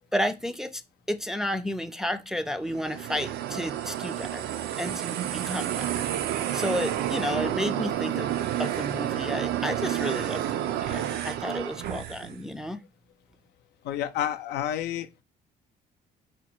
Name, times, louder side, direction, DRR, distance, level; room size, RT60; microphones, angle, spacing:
voice 1, 0.1-0.8 1.1-4.5 4.8-6.0 6.5-8.3 8.6-12.8, equal, 5° right, 0.4 m, -32 dB
sound 1, 2.6-12.4, right 12 dB, 75° right, 0.5 m, -30 dB
voice 2, 13.8-15.2, left 11 dB, 80° left, 0.5 m, -30 dB
5.1 x 2.2 x 4.2 m
cardioid pair, 110°, 17 cm